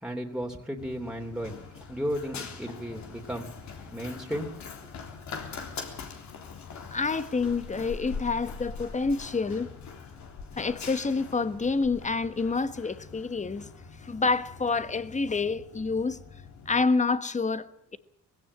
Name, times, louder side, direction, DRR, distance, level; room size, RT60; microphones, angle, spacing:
voice 1, 0.0-1.6 1.9-3.5 3.8-4.5, equal, 5° right, 3.0 m, -34 dB
Run, 0.8-16.8, left 5 dB, 65° left, 3.6 m, -43 dB
voice 2, 6.9-9.7 10.6-13.7 14.0-16.2 16.7-18.0, left 4 dB, 25° left, 1.3 m, -28 dB
20.5 x 17.0 x 8.7 m
cardioid pair, 90°, 30 cm